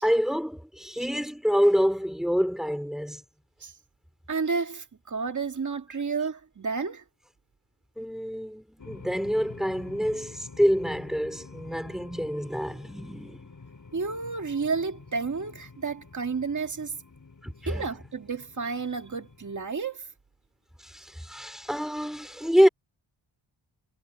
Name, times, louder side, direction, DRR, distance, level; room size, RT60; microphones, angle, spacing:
voice 1, 0.0-3.2 8.0-13.4 17.4-17.8 20.8-22.7, equal, ahead, 4.0 m, -26 dB
voice 2, 4.3-7.0 13.9-17.0 17.7-20.1, right 4 dB, 40° right, 2.0 m, -31 dB
sound 1, 8.8-19.7, left 4 dB, 40° left, 6.1 m, -48 dB
wide cardioid pair, 115°, 48 cm